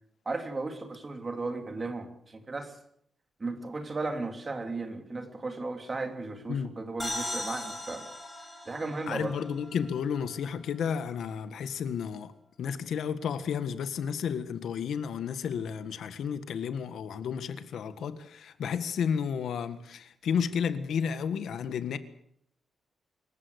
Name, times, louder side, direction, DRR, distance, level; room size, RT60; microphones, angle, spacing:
voice 1, 0.2-2.8 3.4-8.1 8.7-9.3, right 3 dB, 25° right, 3.1 m, -35 dB
sound 1, 7.0-10.6, left 1 dB, 10° left, 6.3 m, -39 dB
voice 2, 9.1-12.3 12.6-22.0, left 7 dB, 85° left, 1.6 m, -32 dB
26.0 x 15.5 x 8.2 m
wide cardioid pair, 165°, 0 cm